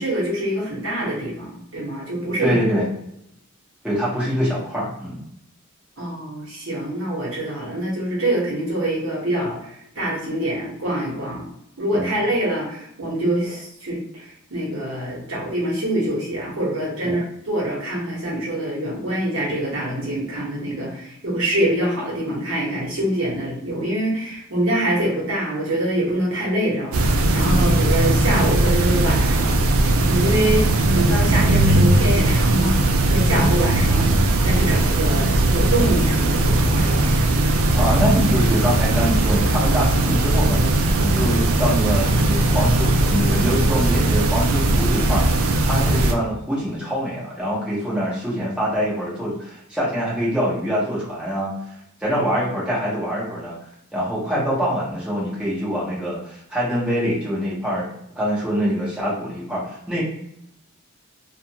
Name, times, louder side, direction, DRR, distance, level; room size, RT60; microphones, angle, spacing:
voice 1, 0.0-2.6 6.0-9.7 9.9-11.5 11.8-29.6 30.0-30.7 30.9-32.8 33.0-34.1 34.4-37.3, right 1 dB, 75° right, -5 dB, 1.1 m, -25 dB
voice 2, 2.4-2.9 3.8-5.2 11.9-12.2 17.0-17.2 27.4-27.8 37.7-40.6 41.0-51.5 52.0-53.6 53.9-57.9 58.1-60.0, equal, 5° right, -9 dB, 1.1 m, -24 dB
sound 1, 26.9-46.1, right 2 dB, 90° right, 0.4 m, -18 dB
2.5 x 2.5 x 2.8 m, 0.76 s
head